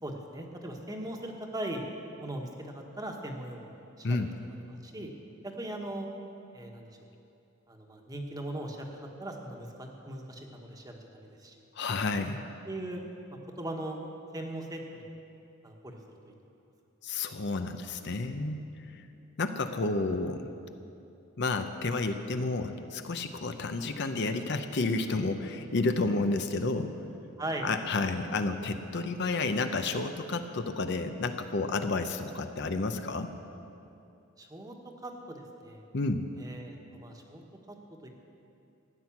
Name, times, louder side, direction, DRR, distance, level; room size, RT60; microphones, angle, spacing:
voice 1, 0.0-1.8 2.2-4.3 4.6-5.1 5.4-6.1 6.5-6.9 7.7-11.5 12.7-13.0 13.3-14.0 14.3-15.0 15.6-16.3 27.4-27.7 34.4-34.7 35.0-35.8 36.4-37.4 37.7-37.8 38.0-38.1, right 1 dB, 20° right, 2 dB, 1.3 m, -39 dB
voice 2, 11.8-12.4 17.0-18.7 18.9-19.0 19.4-20.5 21.4-26.9 27.6-33.3 35.9-36.3, left 3 dB, 55° left, 7 dB, 0.7 m, -31 dB
15.0 x 9.7 x 7.3 m, 2.7 s
head